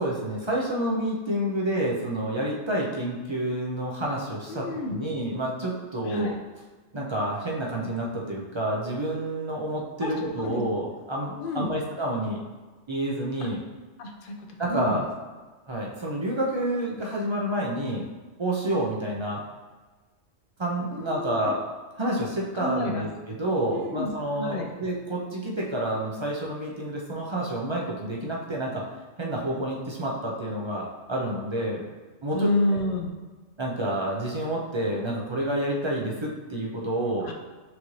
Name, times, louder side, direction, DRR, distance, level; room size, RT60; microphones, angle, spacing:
voice 1, 0.0-6.3 6.9-12.4 12.9-13.6 14.6-15.1 15.7-18.1 18.4-19.4 20.6-21.6 22.0-28.8 29.2-31.8 32.2-32.8 33.6-37.3, right 1 dB, 35° right, -3 dB, 0.4 m, -29 dB
voice 2, 4.5-5.0 6.1-6.4 10.0-10.1 10.4-10.6 11.4-11.7 14.0-14.3 14.7-15.0 20.9-21.5 22.5-23.0 23.7-24.1 24.4-24.7 32.3-33.1 37.2-37.3, left 1 dB, 55° left, 2 dB, 0.6 m, -29 dB
6.0 x 2.6 x 3.1 m, 1.3 s
omnidirectional pair, 1.2 m